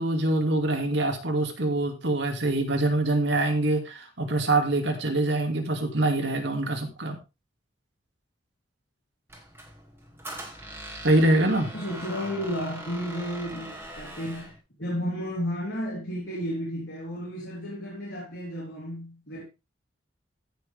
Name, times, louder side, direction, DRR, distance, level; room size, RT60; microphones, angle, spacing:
voice 1, 0.0-7.2 11.0-11.7, right 2 dB, 70° right, 2.4 m, -24 dB
Squeak, 9.3-14.6, right 1 dB, 10° right, 2.2 m, -41 dB
voice 2, 11.7-14.5 14.8-19.4, equal, 65° left, 3.7 m, -33 dB
15.0 x 6.4 x 3.4 m
head